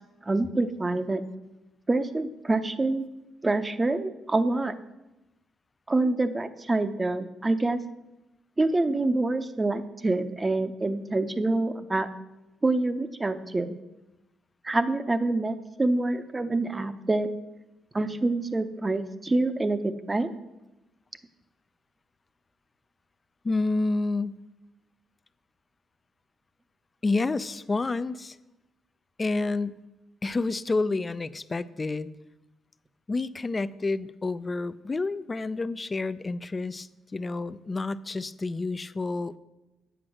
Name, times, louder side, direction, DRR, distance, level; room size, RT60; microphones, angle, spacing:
voice 1, 0.3-1.2 1.9-3.1 3.4-4.7 5.9-7.8 8.6-12.1 12.6-13.7 14.6-17.3 17.9-20.3, right 2 dB, 20° right, 11 dB, 0.7 m, -26 dB
voice 2, 23.4-24.4 27.0-28.4 29.2-29.8 30.2-32.1 33.1-39.3, left 3 dB, 25° left, 15 dB, 0.4 m, -29 dB
8.0 x 7.4 x 6.3 m, 1.0 s
cardioid pair, 90°, 0 cm